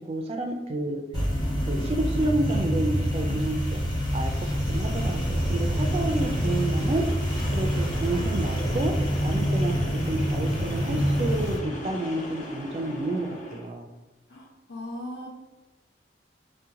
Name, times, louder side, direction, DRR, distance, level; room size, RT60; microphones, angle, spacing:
voice 1, 0.1-1.0 1.7-3.8 4.1-7.1 7.5-8.9 9.2-13.9, right 2 dB, 30° right, 3 dB, 0.3 m, -30 dB
sound 1, 1.1-11.6, equal, 25° left, 1.1 m, -26 dB
sound 2, 4.8-13.7, left 1 dB, 40° left, 0.6 m, -40 dB
voice 2, 14.3-15.3, left 1 dB, 70° left, -4 dB, 1.0 m, -38 dB
2.8 x 2.1 x 3.6 m, 1.2 s
head